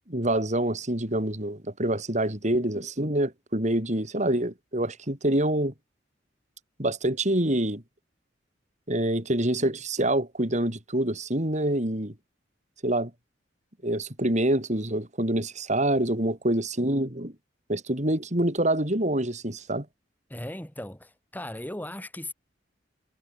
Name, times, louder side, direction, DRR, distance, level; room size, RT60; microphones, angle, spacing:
voice 1, 0.1-5.7 6.8-7.8 8.9-12.1 12.8-13.1 13.8-17.3 17.7-19.9, right 1 dB, 40° right, 5.1 m, -26 dB
voice 2, 20.3-22.3, left 1 dB, 10° left, 4.8 m, -37 dB
head